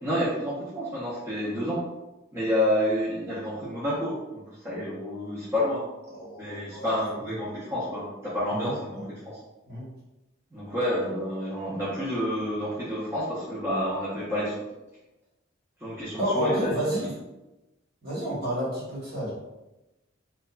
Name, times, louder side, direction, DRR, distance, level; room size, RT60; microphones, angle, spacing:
voice 1, 0.0-1.9 2.3-5.9 6.4-9.4 10.5-14.5 15.8-17.0, equal, 15° right, -9 dB, 0.5 m, -29 dB
voice 2, 6.1-7.1 8.5-9.0 9.7-9.9 16.2-17.2 18.0-19.3, right 1 dB, 55° right, -7 dB, 1.1 m, -30 dB
2.8 x 2.2 x 2.3 m, 1.0 s
head